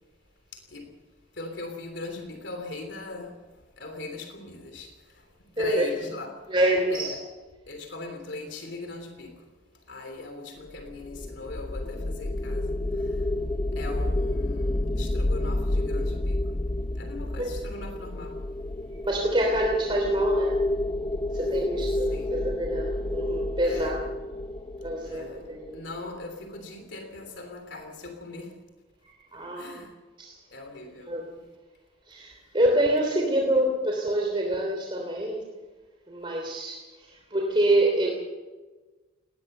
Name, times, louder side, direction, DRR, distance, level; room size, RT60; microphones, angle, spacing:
voice 1, 0.5-0.9 1.3-6.5 6.9-7.2 7.7-13.3 13.7-16.4 16.9-18.4 22.1-22.3 23.6-23.9 25.0-25.5 25.7-28.5 29.6-29.9 30.5-31.2, left 2 dB, 65° left, 5 dB, 3.2 m, -40 dB
voice 2, 6.5-7.1 17.4-17.5 19.0-20.6 21.3-24.1 24.8-25.8 29.0-29.9 30.2-30.4 31.1-31.4 32.1-35.4 36.1-38.1, right 1 dB, 25° right, 0 dB, 3.1 m, -26 dB
sound 1, 10.8-26.0, left 1 dB, 25° left, 0.5 m, -29 dB
20.5 x 19.0 x 6.7 m, 1.3 s
head